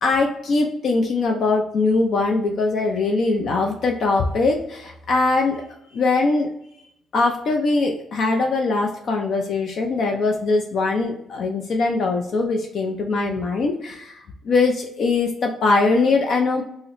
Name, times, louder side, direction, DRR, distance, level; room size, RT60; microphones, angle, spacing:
voice 1, 0.0-5.6 5.9-6.5 7.1-14.2 14.4-16.6, left 3 dB, 60° left, 2 dB, 0.5 m, -21 dB
3.9 x 2.0 x 2.9 m, 0.75 s
cardioid pair, 90°, 0 cm